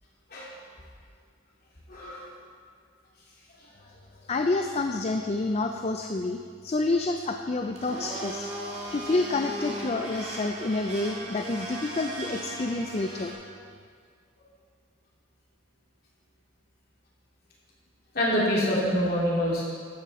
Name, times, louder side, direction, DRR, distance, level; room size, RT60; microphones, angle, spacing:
voice 1, 1.9-2.2 18.1-19.6, equal, 50° left, -6 dB, 3.2 m, -25 dB
voice 2, 4.3-8.5 8.9-13.4, left 2 dB, 30° left, 5 dB, 0.4 m, -28 dB
Domestic sounds home sounds, 7.7-13.3, right 1 dB, 35° right, 1.9 m, -37 dB
13.5 x 9.4 x 4.2 m, 2.1 s
head